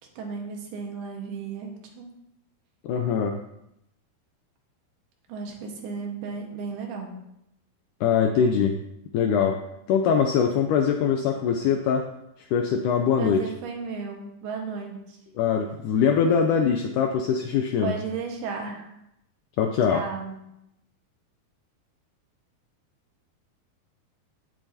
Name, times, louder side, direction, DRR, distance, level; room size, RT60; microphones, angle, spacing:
voice 1, 0.2-2.1 5.3-7.1 13.2-15.2 17.8-18.9 19.9-20.4, right 5 dB, 90° right, 1 dB, 3.5 m, -34 dB
voice 2, 2.8-3.4 8.0-8.8 9.1-9.6 9.9-12.1 12.4-13.4 15.4-17.9 19.6-20.0, left 7 dB, 90° left, 5 dB, 1.8 m, -22 dB
16.0 x 7.0 x 2.8 m, 0.82 s
omnidirectional pair, 4.3 m